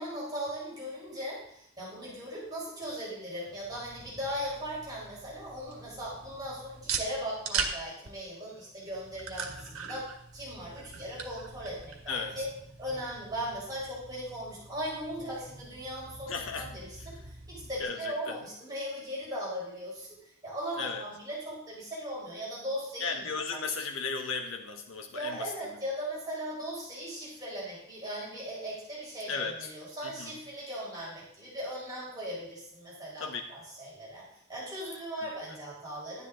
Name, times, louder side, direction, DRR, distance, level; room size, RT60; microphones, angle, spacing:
voice 1, 0.0-10.1 10.3-12.5 12.8-20.1 20.4-23.6 25.1-34.2 34.5-36.3, equal, 20° right, -7 dB, 4.8 m, -38 dB
sound 1, 3.5-17.8, right 5 dB, 85° right, 1.6 m, -41 dB
voice 2, 16.3-16.7 17.8-18.4 20.8-21.1 23.0-25.5 29.3-29.7 30.0-30.3 33.2-33.4, left 5 dB, 70° left, 3 dB, 1.0 m, -35 dB
12.0 x 10.0 x 3.8 m, 0.73 s
head